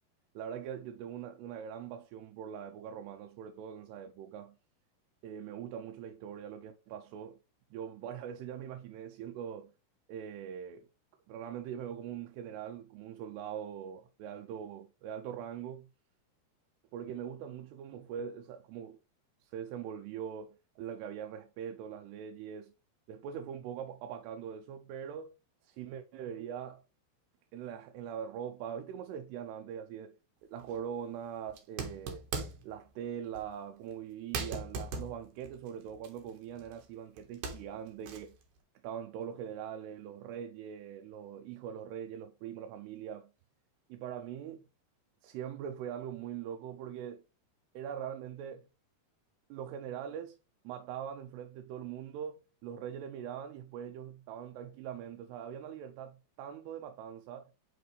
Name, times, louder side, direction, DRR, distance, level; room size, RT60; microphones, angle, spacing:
voice 1, 0.4-4.6 5.2-7.4 7.7-9.7 10.1-10.9 11.3-15.9 16.9-19.0 19.4-22.7 23.1-25.4 25.6-26.8 27.5-30.2 30.4-32.2 32.6-38.4 38.8-43.3 43.9-44.7 45.2-47.2 47.7-48.7 49.5-50.4 50.6-57.5, right 8 dB, 85° right, 2.7 m, -42 dB
sound 1, 30.6-30.8 31.5-32.7 33.3-33.5 33.9-34.0 34.3-36.9 37.2-38.4, right 4 dB, 65° right, 2.2 m, -40 dB
6.7 x 4.9 x 3.1 m
omnidirectional pair, 4.7 m